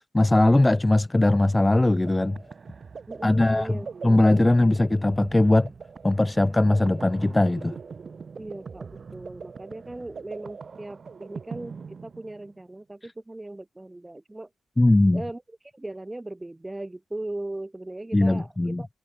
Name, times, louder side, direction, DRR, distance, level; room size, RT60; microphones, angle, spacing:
voice 1, 0.1-2.4 3.2-3.8 4.0-5.7 6.0-7.8 14.8-15.2 18.1-18.8, left 2 dB, 15° left, 0.3 m, -20 dB
sound 1, 1.8-12.6, right 5 dB, 40° right, 0.7 m, -41 dB
voice 2, 3.1-3.9 8.4-14.5 15.1-15.4 15.7-18.9, right 2 dB, 15° right, 1.9 m, -38 dB
cardioid pair, 90°, 0 cm